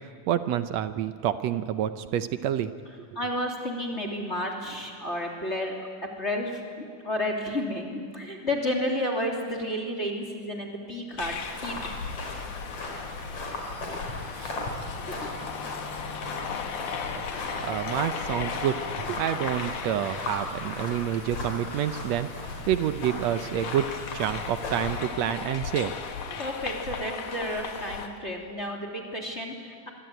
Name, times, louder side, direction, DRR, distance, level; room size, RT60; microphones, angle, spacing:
voice 1, 0.0-2.7 14.4-14.6 17.1-17.3 17.6-26.0 26.3-26.4, right 10 dB, 70° right, 11 dB, 1.8 m, -28 dB
voice 2, 3.1-5.9 6.2-6.6 7.0-11.3 11.6-11.7 26.4-29.9, left 1 dB, 20° left, 0 dB, 3.0 m, -31 dB
sound 1, 11.2-28.1, left 6 dB, 75° left, 3.3 m, -37 dB
sound 2, 11.2-25.0, left 2 dB, 45° left, 5.3 m, -37 dB
26.0 x 23.5 x 9.2 m, 2.2 s
omnidirectional pair, 3.6 m